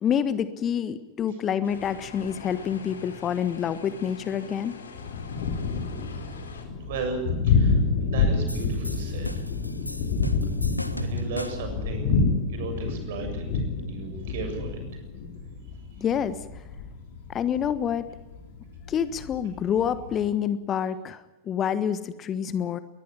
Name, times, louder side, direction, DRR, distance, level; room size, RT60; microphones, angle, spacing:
voice 1, 0.0-4.7 16.0-16.4 17.3-18.1 18.9-21.2 21.5-22.8, left 8 dB, 25° left, 14 dB, 1.3 m, -27 dB
sound 1, 1.6-6.7, left 4 dB, 70° left, 4.1 m, -43 dB
Thunder, 4.9-20.2, left 4 dB, 55° left, 3.9 m, -28 dB
voice 2, 6.8-7.8 8.1-9.5 10.9-12.2 12.5-13.6 13.9-14.8, right 4 dB, 55° right, 6 dB, 7.5 m, -35 dB
sound 2, 8.5-11.8, left 1 dB, 90° left, 1.4 m, -37 dB
21.5 x 21.5 x 9.0 m, 1.1 s
figure-of-eight pair, 90°, 0 cm